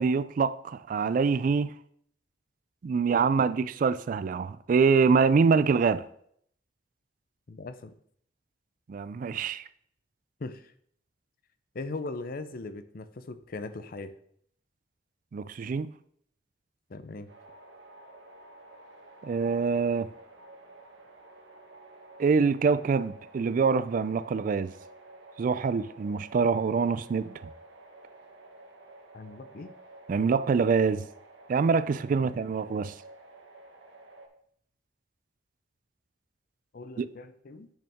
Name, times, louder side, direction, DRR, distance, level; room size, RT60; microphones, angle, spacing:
voice 1, 0.0-1.7 2.8-6.1 8.9-9.6 15.3-15.9 19.2-20.1 22.2-24.7 25.4-27.3 30.1-31.0 31.5-32.9 37.0-37.1, right 5 dB, 50° right, 0.3 m, -25 dB
voice 2, 7.5-7.9 10.4-10.7 11.7-14.1 16.9-17.3 29.1-29.7 32.2-32.4 36.7-37.7, left 3 dB, 55° left, 0.6 m, -39 dB
sound 1, 17.3-34.3, right 2 dB, 85° right, 1.2 m, -51 dB
8.7 x 5.7 x 3.5 m
head